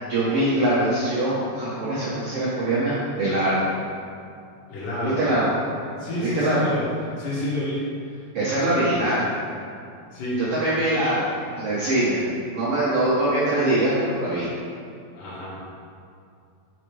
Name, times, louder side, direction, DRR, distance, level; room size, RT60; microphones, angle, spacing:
voice 1, 0.1-3.6 5.0-5.5 6.2-6.6 8.3-9.2 10.4-11.3 11.6-12.2 12.5-14.5, right 1 dB, 60° right, -9 dB, 1.6 m, -23 dB
voice 2, 4.7-5.2 6.0-6.9 7.2-8.2 10.1-10.4 15.1-15.6, left 1 dB, 65° left, -10 dB, 3.0 m, -29 dB
5.7 x 5.2 x 4.8 m, 2.4 s
omnidirectional pair, 4.2 m